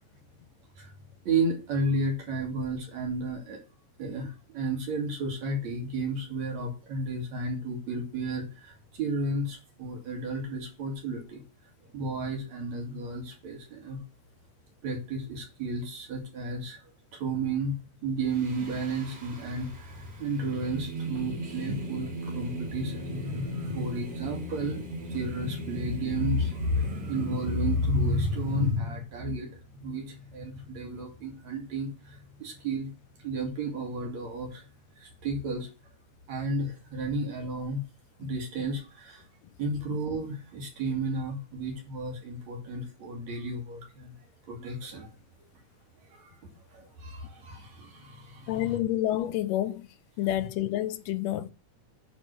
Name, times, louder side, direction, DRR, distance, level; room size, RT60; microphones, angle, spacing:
voice 1, 1.2-3.6 4.0-11.4 11.9-14.0 14.8-16.8 17.1-24.8 25.1-29.5 29.8-32.9 33.2-34.7 34.9-35.7 36.3-37.8 38.2-39.2 39.6-44.1 44.5-45.1 46.1-48.8, right 1 dB, 60° right, 3.3 m, -32 dB
Singing, 18.3-28.7, right 1 dB, 35° right, 2.9 m, -39 dB
voice 2, 48.5-49.9 50.2-51.5, left 13 dB, 75° left, 1.6 m, -29 dB
10.0 x 4.3 x 6.5 m
omnidirectional pair, 3.6 m